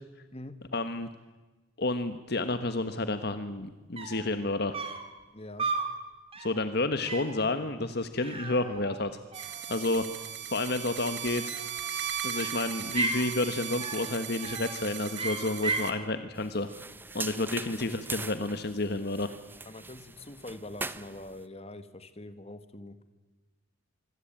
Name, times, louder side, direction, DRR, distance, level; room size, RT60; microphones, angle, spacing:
voice 1, 0.7-1.1 1.8-4.7 6.4-9.2 9.7-10.1 10.5-11.6 12.2-16.7 17.1-19.3, left 2 dB, 55° left, 10 dB, 1.3 m, -30 dB
sound 1, 3.7-3.8 4.0-4.3 4.7-5.1 5.6-6.0 6.3-6.6 7.1-7.4 8.2-9.1 9.3-10.0 11.3-11.9 12.3-13.3 13.8-14.1 14.4-14.8 15.1-16.0, right 3 dB, 30° right, 3.4 m, -35 dB
voice 2, 5.3-5.7 19.7-23.0, left 1 dB, 30° left, 11 dB, 1.8 m, -44 dB
sound 2, 9.3-15.9, right 9 dB, 60° right, 2.5 m, -37 dB
sound 3, 16.4-21.4, right 3 dB, 10° right, 0.8 m, -41 dB
25.0 x 25.0 x 9.0 m, 1.2 s
head